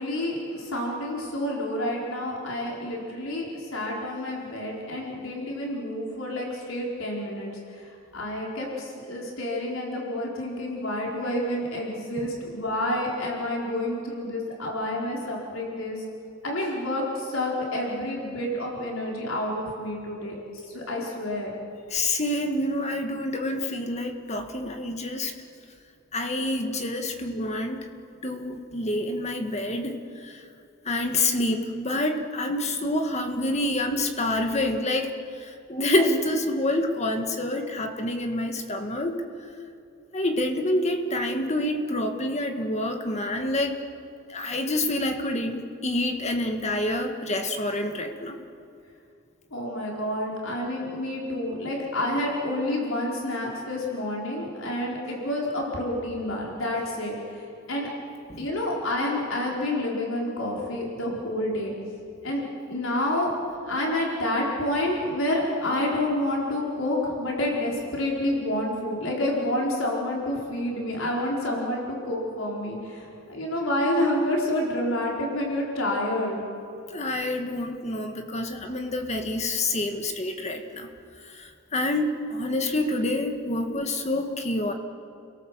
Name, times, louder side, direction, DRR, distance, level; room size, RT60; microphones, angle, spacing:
voice 1, 0.0-16.0 16.4-21.5 49.5-57.4 57.7-57.9 58.4-61.7 62.2-62.4 62.7-63.3 63.7-76.4, left 1 dB, 85° left, -2 dB, 4.5 m, -29 dB
voice 2, 21.9-25.3 26.1-27.9 28.2-29.9 30.2-30.4 30.9-39.2 40.1-43.8 44.3-48.4 58.3-58.4 76.9-80.9 81.4-84.7, left 1 dB, 35° left, 5 dB, 1.9 m, -27 dB
29.5 x 18.0 x 7.6 m, 2.5 s
head